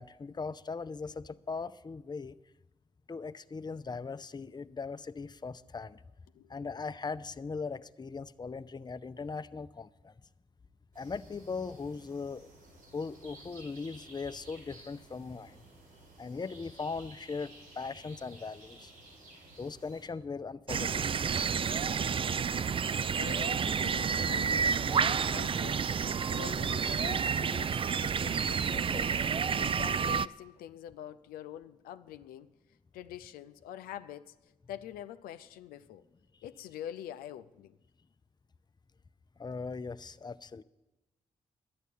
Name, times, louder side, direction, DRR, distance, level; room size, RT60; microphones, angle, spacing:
voice 1, 0.0-2.3 3.1-6.0 6.5-10.1 11.0-12.5 12.9-15.6 16.2-18.9 19.6-21.1 39.4-40.6, left 4 dB, 30° left, 0.6 m, -39 dB
sound 1, 10.9-20.1, right 2 dB, 80° right, 5.7 m, -55 dB
sound 2, 20.7-30.3, right 6 dB, 35° right, 0.3 m, -30 dB
voice 2, 23.1-32.5 32.9-36.0 36.4-37.8, left 11 dB, 85° left, 0.4 m, -46 dB
11.0 x 9.4 x 8.5 m
supercardioid pair, 45°, 15 cm